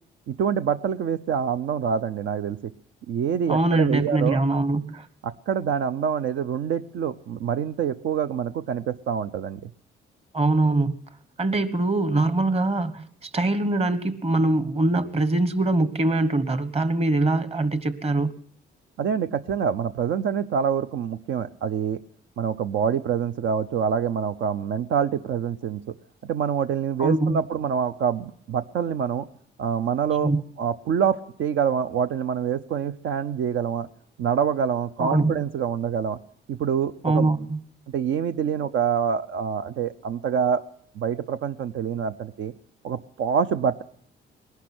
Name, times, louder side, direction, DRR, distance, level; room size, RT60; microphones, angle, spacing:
voice 1, 0.3-2.6 3.1-4.4 5.2-9.6 19.0-22.0 22.4-25.8 26.2-29.2 29.6-30.3 30.6-33.9 34.2-36.2 36.5-37.3 37.9-40.6 41.0-42.5 42.8-43.8, right 7 dB, 75° right, 10 dB, 0.6 m, -26 dB
voice 2, 3.5-5.1 10.3-10.9 11.4-18.4 27.0-27.4 30.2-30.4 35.0-35.3 37.0-37.6, right 2 dB, 30° right, 12 dB, 1.3 m, -23 dB
20.0 x 11.5 x 6.1 m, 0.63 s
cardioid pair, 90°, 20 cm